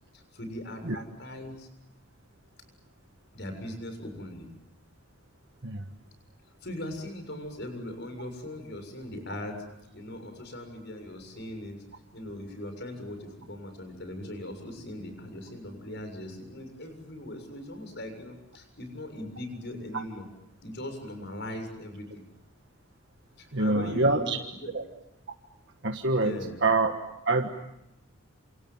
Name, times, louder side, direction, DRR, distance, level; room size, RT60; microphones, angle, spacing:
voice 1, 0.1-1.7 3.3-4.5 6.6-9.6 9.9-11.8 12.1-20.3 20.6-22.2 23.4-24.7 26.2-26.6, left 1 dB, 55° left, 7 dB, 7.1 m, -39 dB
voice 2, 23.5-24.4 24.7-24.8 25.8-26.9 27.3-27.5, right 2 dB, 55° right, 4 dB, 1.6 m, -25 dB
28.5 x 28.0 x 7.4 m, 0.85 s
head